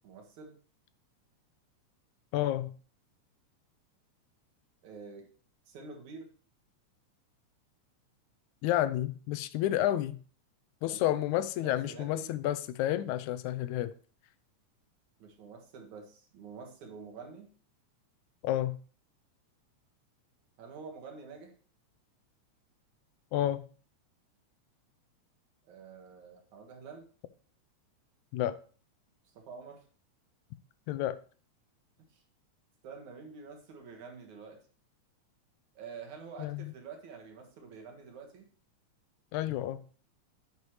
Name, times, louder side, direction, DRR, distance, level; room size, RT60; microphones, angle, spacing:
voice 1, 0.0-0.6 4.8-5.3 5.7-6.3 10.9-11.2 11.6-12.3 15.2-17.5 20.6-21.5 25.7-27.0 29.3-29.8 32.1-32.2 32.8-34.6 35.8-38.5, right 5 dB, 75° right, 3.1 m, -47 dB
voice 2, 2.3-2.7 8.6-10.2 10.8-13.9 18.4-18.8 23.3-23.6 28.3-28.6 30.9-31.2 36.4-36.7 39.3-39.8, left 13 dB, 85° left, 2.0 m, -30 dB
9.7 x 9.1 x 3.2 m
omnidirectional pair, 3.4 m